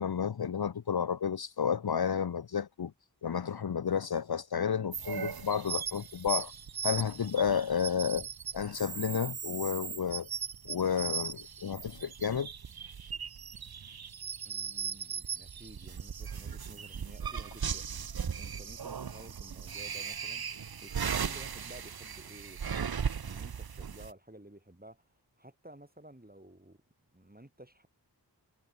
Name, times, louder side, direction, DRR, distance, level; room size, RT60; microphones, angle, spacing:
voice 1, 0.0-2.9 3.2-6.5 6.8-8.3 8.5-10.3 10.6-12.5, left 7 dB, 65° left, 0.6 m, -31 dB
sound 1, 4.9-24.1, right 7 dB, 60° right, 0.7 m, -38 dB
voice 2, 14.5-17.9 18.4-20.4 20.8-22.9 23.2-26.8 27.1-27.9, right 1 dB, 20° right, 5.2 m, -53 dB
wide cardioid pair, 40°, 42 cm